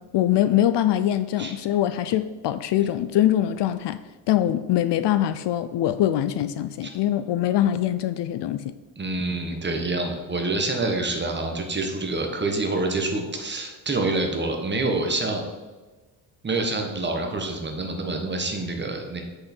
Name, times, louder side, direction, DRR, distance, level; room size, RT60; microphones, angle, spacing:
voice 1, 0.0-4.0 4.3-8.7, left 12 dB, 60° left, 0.5 m, -23 dB
voice 2, 9.0-15.4 16.4-19.2, right 2 dB, 20° right, 1.3 m, -27 dB
7.7 x 6.6 x 4.4 m
cardioid pair, 130°, 48 cm